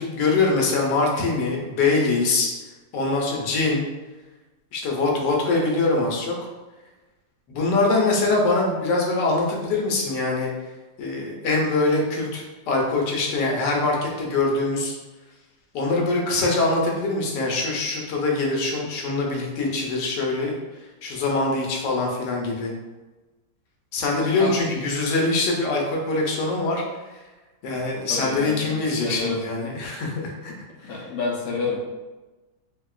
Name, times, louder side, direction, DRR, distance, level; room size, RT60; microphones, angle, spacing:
voice 1, 0.0-2.5 2.9-3.8 4.7-6.4 7.5-10.5 11.0-14.9 15.7-20.6 21.0-22.7 23.9-26.8 27.6-30.5 30.9-31.0, left 3 dB, 85° left, -1 dB, 1.3 m, -23 dB
voice 2, 24.2-24.5 28.1-29.4 30.8-31.8, left 3 dB, 65° left, -3 dB, 1.0 m, -29 dB
3.5 x 2.8 x 2.3 m, 1.2 s
omnidirectional pair, 1.8 m